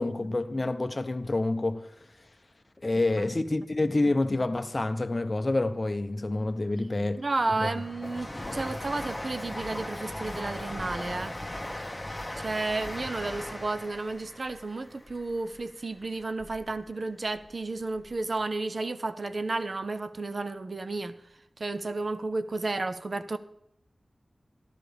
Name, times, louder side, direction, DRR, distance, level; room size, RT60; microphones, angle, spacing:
voice 1, 0.0-1.9 2.8-7.2 7.6-7.7, left 2 dB, 35° left, 0.7 m, -28 dB
voice 2, 6.7-11.3 12.4-21.1 21.6-23.4, right 3 dB, 50° right, 0.7 m, -32 dB
Train, 6.8-16.8 17.2-18.1 18.4-18.5, left 1 dB, 15° left, 1.3 m, -39 dB
13.5 x 12.5 x 3.4 m
wide cardioid pair, 80°, 0 cm